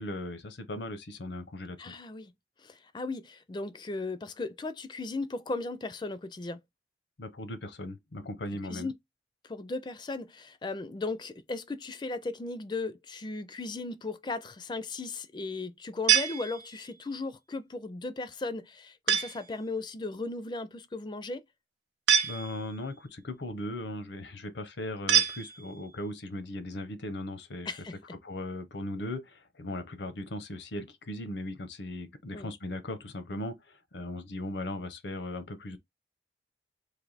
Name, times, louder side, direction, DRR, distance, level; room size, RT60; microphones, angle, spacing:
voice 1, 0.0-2.0 7.2-8.9 22.2-27.7 28.2-35.8, left 1 dB, 80° left, 0.7 m, -38 dB
voice 2, 1.8-2.3 2.6-6.6 8.7-9.0 9.4-21.4 27.7-28.2 32.3-32.5, left 3 dB, 25° left, 0.4 m, -36 dB
sound 1, 16.1-17.0 19.1-19.6 22.1-22.9 25.1-26.0, right 9 dB, 70° right, 0.6 m, -27 dB
3.3 x 2.6 x 3.9 m
head